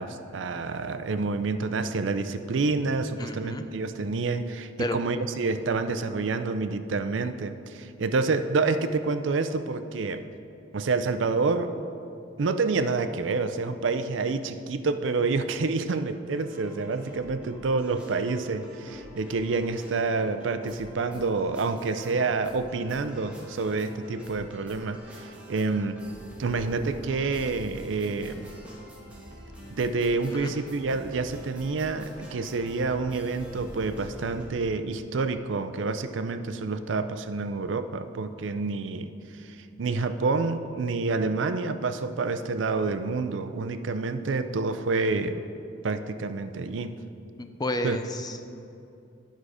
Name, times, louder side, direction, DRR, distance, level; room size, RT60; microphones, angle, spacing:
voice 1, 0.0-10.2 10.7-11.8 12.4-26.0 26.4-28.5 29.7-39.1 39.4-45.4 45.8-47.0 47.8-48.0, right 3 dB, 85° right, 10 dB, 0.5 m, -28 dB
voice 2, 3.2-3.6 4.8-5.0 30.3-30.5 47.4-48.5, left 1 dB, 20° left, 7 dB, 0.4 m, -31 dB
sound 1, 16.4-34.4, equal, 5° right, 1.5 m, -46 dB
10.5 x 6.3 x 4.9 m, 2.6 s
head